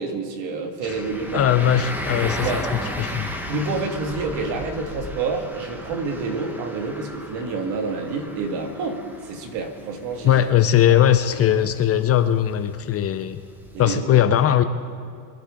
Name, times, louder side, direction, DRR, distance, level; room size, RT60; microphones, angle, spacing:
voice 1, 0.0-1.5 2.4-2.7 3.5-10.4 10.9-11.0 11.6-11.7 13.7-14.2, right 3 dB, 65° right, 4 dB, 2.4 m, -28 dB
sound 1, 0.8-13.8, left 1 dB, 5° right, 1.5 m, -35 dB
voice 2, 1.3-2.5 3.0-3.3 10.2-13.4 13.8-14.6, left 10 dB, 30° left, 10 dB, 0.6 m, -19 dB
24.0 x 11.5 x 3.8 m, 2.3 s
supercardioid pair, 115°, 48 cm